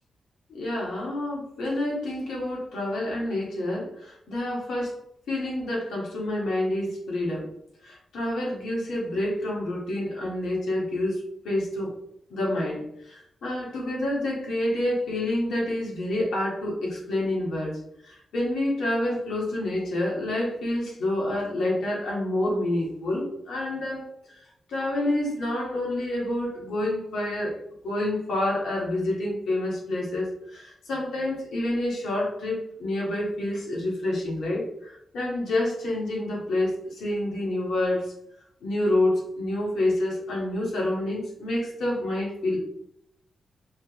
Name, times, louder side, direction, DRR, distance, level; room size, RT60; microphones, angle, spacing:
voice 1, 0.5-5.0 5.3-7.5 7.8-11.9 12.3-24.1 24.7-27.6 27.8-38.1 38.6-42.6, left 1 dB, 85° left, -3 dB, 1.3 m, -28 dB
3.2 x 2.9 x 2.9 m, 0.73 s
cardioid pair, 55°, 0 cm